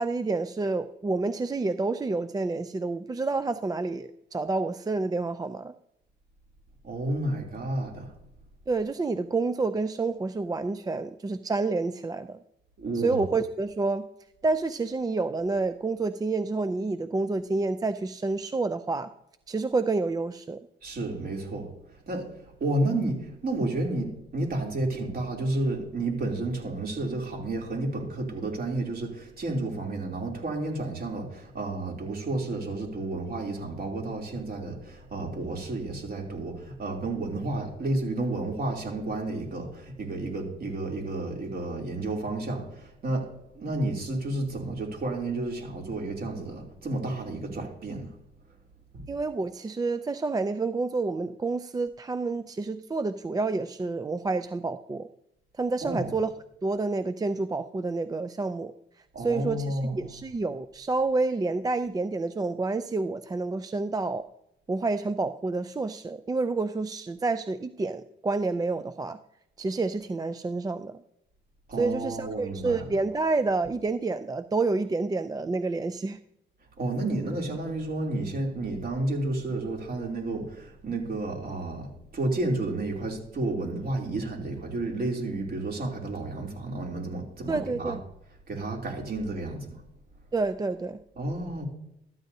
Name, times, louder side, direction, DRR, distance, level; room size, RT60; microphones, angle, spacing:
voice 1, 0.0-5.7 8.7-12.4 12.9-14.1 14.4-19.1 19.5-20.6 49.1-55.1 55.6-56.3 56.6-58.7 59.2-64.3 64.7-69.2 69.6-71.0 71.8-76.2 87.5-88.0 90.3-91.0, right 3 dB, 20° right, 0.4 m, -29 dB
voice 2, 6.8-8.1 12.8-13.2 20.8-21.7 22.1-48.1 48.9-49.1 55.8-56.1 59.1-60.2 71.7-72.9 76.8-88.0 88.5-89.8 91.2-91.6, right 2 dB, 50° right, 3.0 m, -31 dB
13.0 x 10.0 x 2.7 m
cardioid pair, 90°, 20 cm